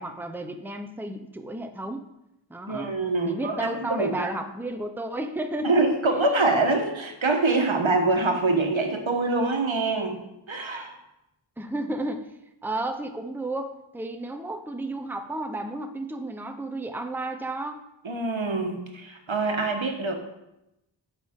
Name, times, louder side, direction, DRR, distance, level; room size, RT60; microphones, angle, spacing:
voice 1, 0.0-2.0 2.5-2.9 3.3-5.7 6.0-6.3 11.6-12.3 12.6-17.8, right 1 dB, 5° right, 6 dB, 0.7 m, -32 dB
voice 2, 2.7-4.3 5.6-10.2 10.5-11.0 18.0-20.2, right 3 dB, 75° right, 3 dB, 1.3 m, -25 dB
10.0 x 7.3 x 3.7 m, 0.89 s
wide cardioid pair, 45°, 47 cm